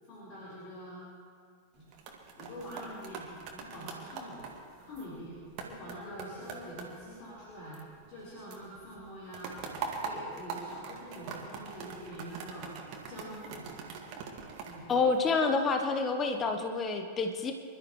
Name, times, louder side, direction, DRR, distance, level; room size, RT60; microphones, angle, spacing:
voice 1, 0.1-1.0 1.7-1.8 2.4-4.4 4.8-5.4 5.6-7.8 8.1-9.5 9.9-12.7 13.1-13.7 14.6-14.9, equal, 40° left, -7 dB, 4.6 m, -45 dB
sound 1, 1.7-8.2 8.5-15.7 16.2-16.5, right 5 dB, 40° right, 2.1 m, -43 dB
voice 2, 14.9-17.5, left 4 dB, 25° left, 5 dB, 1.1 m, -28 dB
26.0 x 12.5 x 3.2 m, 2.1 s
figure-of-eight pair, 90°, 0 cm